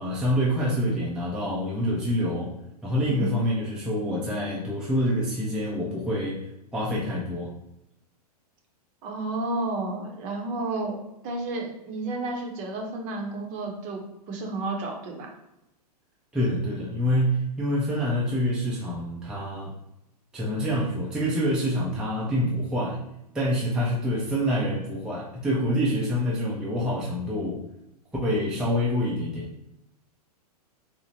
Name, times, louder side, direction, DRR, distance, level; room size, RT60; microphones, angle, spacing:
voice 1, 0.0-2.5 2.8-6.4 6.7-7.5 16.3-19.7 20.3-23.0 23.3-27.6 28.2-29.5, equal, 5° right, -5 dB, 0.4 m, -26 dB
voice 2, 3.0-3.3 9.0-11.0 11.2-14.0 14.3-15.3, right 2 dB, 40° right, 1 dB, 0.7 m, -31 dB
2.7 x 2.0 x 2.9 m, 0.86 s
hypercardioid pair, 120°, 20 cm